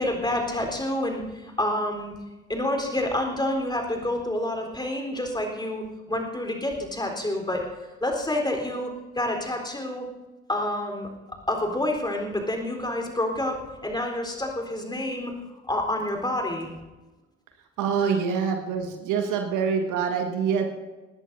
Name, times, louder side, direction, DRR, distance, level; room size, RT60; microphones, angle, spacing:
voice 1, 0.0-2.1 2.5-7.6 8.0-10.1 10.5-11.1 11.5-15.3 15.7-16.7, left 1 dB, 10° left, 2 dB, 4.0 m, -28 dB
voice 2, 17.8-20.7, right 6 dB, 55° right, 5 dB, 1.7 m, -25 dB
19.0 x 18.0 x 2.7 m, 1.1 s
figure-of-eight pair, 50°, 37 cm